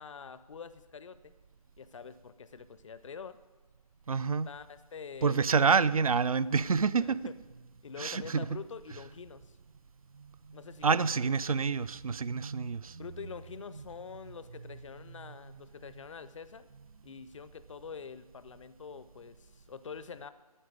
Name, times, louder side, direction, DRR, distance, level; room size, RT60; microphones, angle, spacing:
voice 1, 0.0-1.3 1.8-3.4 4.5-5.4 7.0-7.3 7.8-9.6 10.5-11.0 11.5-11.6 13.0-16.7 17.0-20.3, left 6 dB, 50° left, 0.6 m, -46 dB
voice 2, 4.1-4.5 5.2-7.2 8.0-8.4 10.1-13.1 15.2-15.4, right 5 dB, 65° right, 0.5 m, -28 dB
10.0 x 7.5 x 9.2 m
figure-of-eight pair, 150°, 20 cm